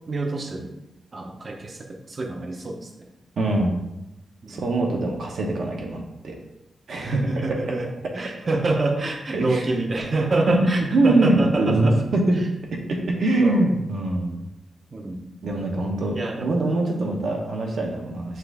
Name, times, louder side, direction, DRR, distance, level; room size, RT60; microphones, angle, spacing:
voice 1, 0.1-0.8 1.1-3.1 4.4-4.7 7.0-7.9 8.1-12.0 12.3-12.5 13.4-13.7 14.9-15.3 16.1-16.6 17.0-17.2, right 2 dB, 35° right, 3 dB, 0.6 m, -26 dB
voice 2, 3.4-3.8 4.5-6.4 6.9-7.4 9.3-9.6 10.5-10.6 10.9-11.9 12.1-12.4 12.9-14.4 15.4-18.4, right 2 dB, 70° right, 0 dB, 0.9 m, -23 dB
5.8 x 2.5 x 3.5 m, 0.92 s
wide cardioid pair, 135°, 0 cm